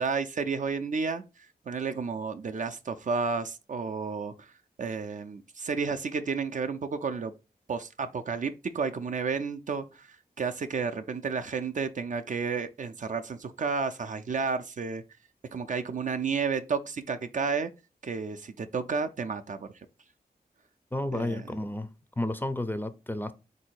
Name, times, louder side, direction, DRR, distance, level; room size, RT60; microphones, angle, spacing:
voice 1, 0.0-4.5 4.8-7.3 7.7-10.1 10.4-15.0 15.5-17.7 18.0-19.7 21.1-21.4, right 5 dB, 50° right, 0.4 m, -31 dB
voice 2, 20.9-23.3, left 1 dB, 10° left, 0.5 m, -32 dB
3.8 x 2.6 x 4.4 m
cardioid pair, 65°, 17 cm